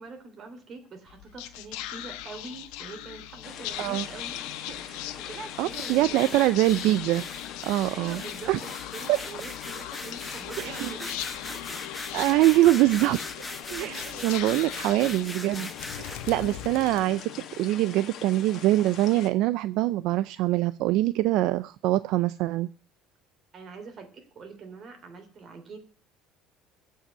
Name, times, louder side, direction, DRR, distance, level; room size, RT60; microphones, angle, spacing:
voice 1, 0.0-6.4 7.9-11.8 12.4-12.6 13.9-14.4 14.8-14.9 16.3-16.6 23.5-25.8, right 4 dB, 35° right, 6 dB, 3.1 m, -44 dB
Whispering, 1.1-17.6, left 13 dB, 85° left, 1.1 m, -40 dB
sound 1, 3.4-19.3, left 9 dB, 45° left, 1.6 m, -43 dB
voice 2, 5.6-7.2 7.6-8.2 8.5-8.6 9.1-9.2 10.6-10.9 12.1-15.7 16.0-17.3 17.6-22.7, right 16 dB, 65° right, 14 dB, 0.5 m, -24 dB
sound 2, 5.7-16.4, left 2 dB, 10° left, 1.0 m, -41 dB
15.5 x 5.6 x 8.8 m, 0.41 s
cardioid pair, 155°, 0 cm